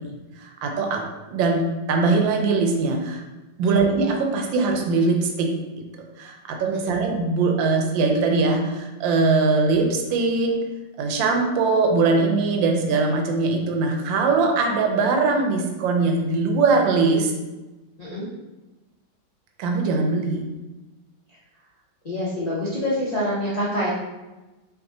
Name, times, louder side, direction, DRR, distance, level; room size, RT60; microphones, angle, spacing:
voice 1, 0.0-1.6 1.9-3.2 3.6-10.6 11.0-17.3 19.6-20.4, right 3 dB, 80° right, 3 dB, 1.4 m, -21 dB
voice 2, 18.0-18.3 22.0-23.9, left 1 dB, 90° left, -9 dB, 0.3 m, -26 dB
5.8 x 3.2 x 2.7 m, 1.1 s
omnidirectional pair, 2.1 m